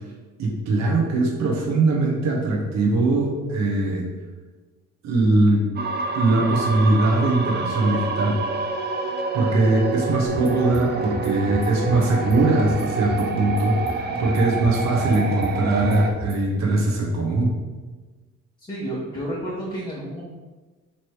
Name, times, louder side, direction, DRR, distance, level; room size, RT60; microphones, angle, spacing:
voice 1, 0.4-4.1 5.0-5.7 6.1-8.4 9.3-17.6, right 2 dB, 65° right, -1 dB, 0.9 m, -21 dB
sound 1, 5.8-16.1, right 3 dB, 35° right, 0.5 m, -28 dB
sound 2, 10.3-16.5, right 1 dB, 20° right, 1.1 m, -36 dB
voice 2, 18.7-20.2, right 1 dB, 15° left, -5 dB, 0.8 m, -31 dB
3.2 x 2.9 x 4.5 m, 1.3 s
cardioid pair, 90°, 30 cm